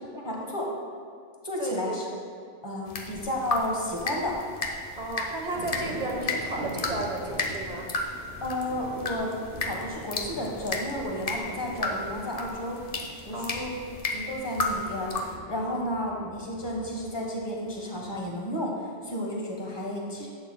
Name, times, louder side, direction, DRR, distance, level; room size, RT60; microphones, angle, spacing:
voice 1, 0.1-0.7 1.4-2.0 2.6-4.4 8.4-9.3 9.7-12.8 13.2-13.7 14.1-20.3, left 1 dB, 25° left, -1 dB, 1.2 m, -32 dB
voice 2, 1.6-2.0 4.9-7.9 13.3-13.8 15.7-15.8, right 2 dB, 40° right, 0 dB, 1.1 m, -33 dB
sound 1, 2.9-15.4, left 3 dB, 40° left, 0.7 m, -34 dB
sound 2, 5.5-18.2, right 1 dB, 85° right, 1.7 m, -44 dB
11.0 x 7.9 x 2.2 m, 2.2 s
omnidirectional pair, 1.1 m